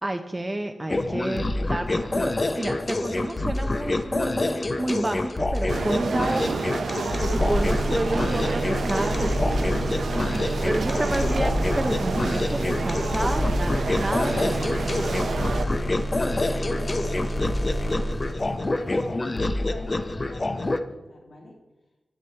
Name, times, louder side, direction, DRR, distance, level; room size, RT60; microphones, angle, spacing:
voice 1, 0.0-2.3 2.6-6.6 7.3-9.8 10.6-14.9, right 1 dB, 20° right, 4 dB, 0.5 m, -30 dB
sound 1, 0.9-20.8, left 2 dB, 35° left, 0.4 m, -27 dB
sound 2, 5.7-15.6, right 4 dB, 85° right, 0.6 m, -29 dB
sound 3, 7.2-18.9, equal, 15° left, 1.1 m, -30 dB
voice 2, 15.5-21.6, left 1 dB, 65° left, -2 dB, 1.1 m, -44 dB
7.8 x 7.0 x 4.3 m, 1.1 s
wide cardioid pair, 100°, 0 cm